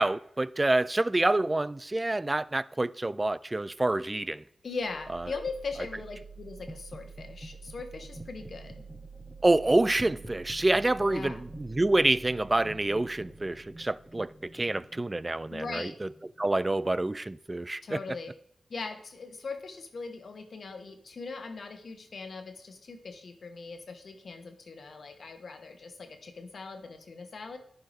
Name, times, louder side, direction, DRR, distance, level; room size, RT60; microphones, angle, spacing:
voice 1, 0.0-4.4 9.4-16.1 16.4-18.0, right 2 dB, 30° right, 0.3 m, -27 dB
voice 2, 4.6-8.8 11.1-11.4 15.5-15.9 17.8-18.3 18.7-27.6, left 4 dB, 65° left, 1.1 m, -40 dB
sound 1, 4.8-16.7, right 3 dB, 5° right, 0.8 m, -47 dB
11.5 x 4.6 x 3.3 m
cardioid pair, 45°, 0 cm